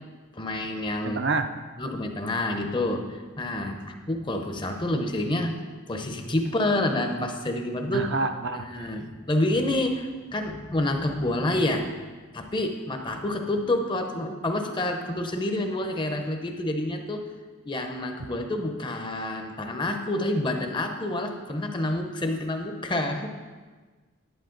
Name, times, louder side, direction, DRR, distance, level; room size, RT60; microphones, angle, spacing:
voice 1, 0.3-1.2 1.8-5.6 5.9-8.1 8.6-11.9 12.3-17.3 17.7-23.3, left 1 dB, 20° left, 5 dB, 0.7 m, -28 dB
voice 2, 1.0-1.5 7.9-8.9, right 3 dB, 55° right, 7 dB, 0.5 m, -28 dB
10.0 x 8.4 x 3.8 m, 1.4 s
head